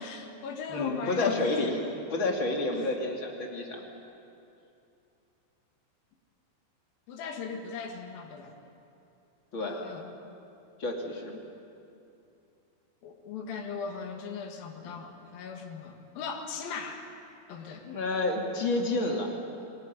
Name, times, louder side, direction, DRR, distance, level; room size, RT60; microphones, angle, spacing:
voice 1, 0.0-1.7 2.7-2.9 7.1-8.5 9.6-10.2 13.0-17.1 17.5-17.9, left 5 dB, 80° left, 3 dB, 3.6 m, -38 dB
voice 2, 0.7-1.8 2.1-3.8 9.5-9.8 10.8-11.4 14.8-14.9 17.8-19.3, left 2 dB, 35° left, 0 dB, 3.0 m, -29 dB
25.5 x 18.5 x 9.7 m, 2.7 s
omnidirectional pair, 4.1 m